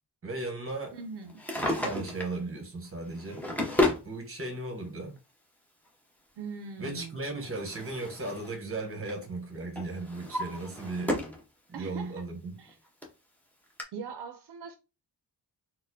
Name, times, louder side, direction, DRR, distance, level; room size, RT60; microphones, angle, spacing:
voice 1, 0.2-0.9 1.6-3.4 4.0-5.2 6.8-11.2 11.7-12.6, right 2 dB, 30° right, 0.9 m, -36 dB
voice 2, 0.9-1.4 6.4-7.2 11.7-12.2 12.6-12.8 13.9-14.8, right 5 dB, 70° right, 0.5 m, -41 dB
Drawer open or close, 1.3-2.4 3.1-4.1 5.2-5.3 7.0-8.6 8.9-9.2 9.8-11.4 11.9-12.0 12.7-12.8 13.0-13.1 13.8-13.9, left 1 dB, 5° left, 0.6 m, -32 dB
4.0 x 2.1 x 2.6 m
wide cardioid pair, 140°, 42 cm